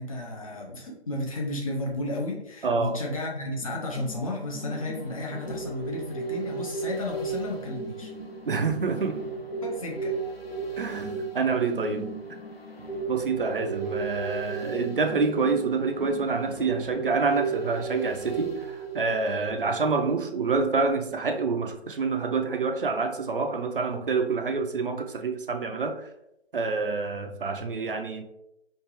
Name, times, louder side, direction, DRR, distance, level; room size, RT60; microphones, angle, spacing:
voice 1, 0.0-8.1 9.0-9.1 9.6-10.1, left 1 dB, 30° left, -1 dB, 0.8 m, -33 dB
voice 2, 2.6-3.0 8.5-9.2 10.8-12.1 13.1-26.1 26.5-28.2, right 4 dB, 55° right, 5 dB, 0.6 m, -27 dB
sound 1, 3.6-19.9 20.2-20.3, right 4 dB, 65° left, 0.8 m, -35 dB
4.4 x 2.5 x 3.1 m, 0.84 s
figure-of-eight pair, 150°, 33 cm